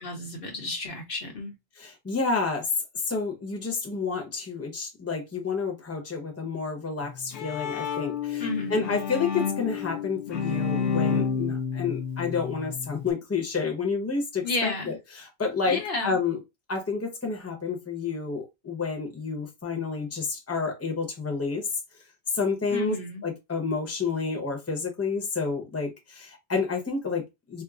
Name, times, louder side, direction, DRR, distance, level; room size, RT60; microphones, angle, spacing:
voice 1, 0.0-1.5 8.4-9.0 14.4-15.0 15.7-16.2 22.7-23.2, left 2 dB, 60° left, 1.0 m, -32 dB
voice 2, 1.7-2.7 3.0-16.4 16.7-21.7 21.9-22.0 22.3-23.0 23.2-27.6, left 4 dB, 15° left, 0.8 m, -30 dB
Bowed string instrument, 7.0-13.1, left 6 dB, 85° left, 0.9 m, -30 dB
4.4 x 2.0 x 2.4 m
omnidirectional pair, 1.1 m